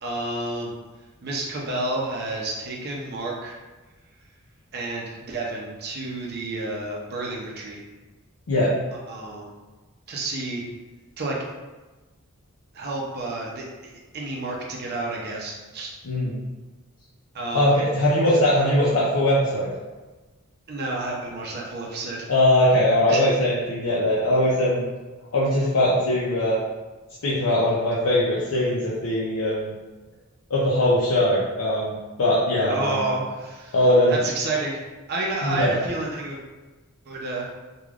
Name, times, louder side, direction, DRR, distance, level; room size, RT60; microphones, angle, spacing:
voice 1, 0.0-0.7 1.2-3.6 4.7-7.8 9.1-9.5 10.1-10.6 11.2-11.4 12.7-15.9 17.3-17.7 20.7-22.3 23.1-23.2 32.7-33.7 34.1-34.8 35.1-36.4 37.1-37.5, right 2 dB, 50° right, -2 dB, 0.6 m, -30 dB
voice 2, 17.5-19.7 22.3-24.9 25.3-26.6 27.2-29.7 30.5-33.0 33.7-34.2 35.4-35.7, left 1 dB, 70° left, -7 dB, 0.5 m, -21 dB
3.3 x 2.3 x 2.3 m, 1.2 s
head